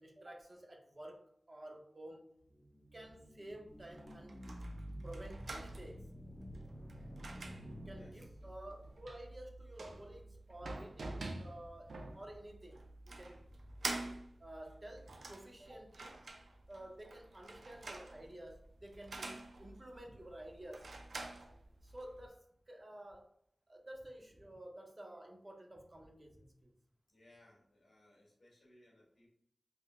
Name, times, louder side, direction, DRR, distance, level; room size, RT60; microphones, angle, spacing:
voice 1, 0.0-2.3 2.9-4.4 5.0-6.1 7.7-13.7 14.4-16.2 16.7-20.9 21.8-23.3 23.7-26.8, right 1 dB, 35° right, 1 dB, 0.6 m, -52 dB
sound 1, 2.4-8.8, equal, 20° left, 0.6 m, -51 dB
sound 2, 3.7-22.3, right 2 dB, 90° right, 0.4 m, -48 dB
voice 2, 7.9-8.4 27.1-29.3, left 1 dB, 80° left, -4 dB, 1.3 m, -65 dB
3.5 x 2.1 x 2.3 m, 0.69 s
wide cardioid pair, 55°, 0 cm